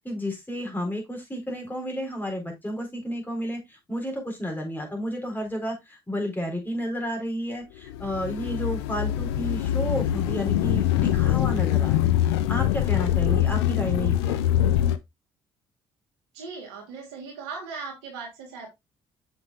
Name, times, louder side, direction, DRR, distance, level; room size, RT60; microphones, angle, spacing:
voice 1, 0.0-14.5, equal, 15° left, 1 dB, 3.9 m, -32 dB
sound 1, 7.9-15.0, left 12 dB, 80° left, 0.5 m, -23 dB
voice 2, 16.3-18.7, right 4 dB, 80° right, 0 dB, 2.5 m, -38 dB
7.1 x 6.7 x 2.4 m, 0.19 s
hypercardioid pair, 50°, 13 cm